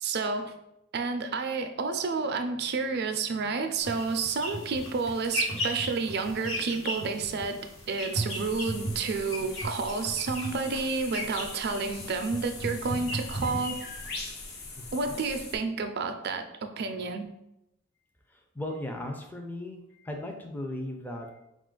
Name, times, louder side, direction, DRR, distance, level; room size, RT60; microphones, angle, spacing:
voice 1, 0.0-0.5 0.9-13.8 14.9-17.3, right 4 dB, 55° right, 6 dB, 0.4 m, -30 dB
sound 1, 3.8-14.2, equal, 90° left, 1.3 m, -36 dB
sound 2, 8.3-15.6, left 3 dB, 55° left, 0.7 m, -42 dB
voice 2, 14.8-15.2 18.3-21.4, left 1 dB, 10° left, 2 dB, 0.5 m, -37 dB
4.7 x 2.4 x 3.7 m, 0.86 s
head